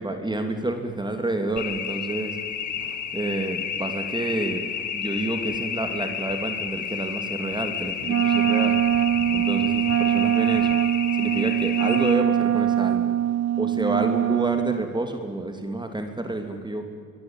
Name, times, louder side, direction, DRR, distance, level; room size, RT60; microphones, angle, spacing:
voice 1, 0.0-2.4 3.1-4.6 4.9-8.8 9.3-10.8 11.2-13.1 13.6-16.9, right 2 dB, 15° right, 6 dB, 3.0 m, -29 dB
sound 1, 1.6-12.1, left 8 dB, 70° left, 2.5 m, -31 dB
Wind instrument woodwind instrument, 8.0-14.9, right 11 dB, 55° right, 0.8 m, -22 dB
26.0 x 22.0 x 9.0 m, 2.4 s
cardioid pair, 90°, 30 cm